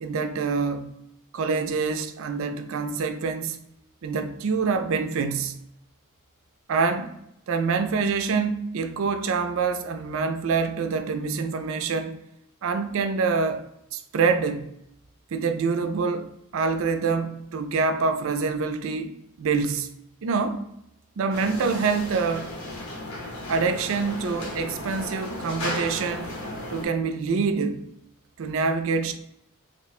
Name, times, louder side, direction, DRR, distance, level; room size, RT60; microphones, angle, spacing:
voice 1, 0.0-0.9 1.3-3.6 4.0-5.6 6.7-7.2 7.5-12.2 12.6-14.7 15.3-19.9 20.2-20.6 21.2-22.5 23.5-26.3 26.7-27.9 28.4-29.1, right 4 dB, 65° right, 0.4 m, -26 dB
sound 1, 21.3-26.8, left 1 dB, 75° left, 0.8 m, -35 dB
3.1 x 2.1 x 4.1 m
head